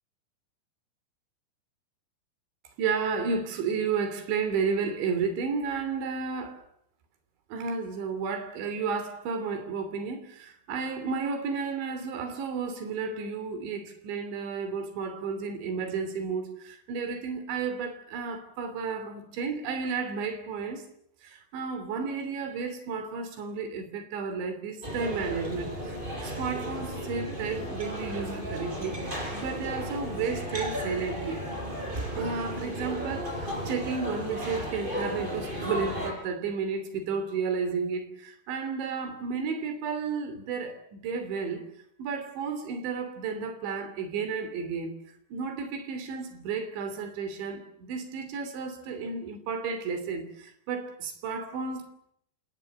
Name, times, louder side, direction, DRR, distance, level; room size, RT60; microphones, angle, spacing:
voice 1, 2.8-6.6 7.5-20.8 21.2-29.0 29.3-31.5 32.2-41.6 42.0-44.9 45.3-51.9, right 5 dB, 75° right, 5.4 m, -32 dB
sound 1, 24.8-36.1, equal, 10° right, 5.4 m, -34 dB
28.0 x 19.0 x 7.8 m
omnidirectional pair, 5.2 m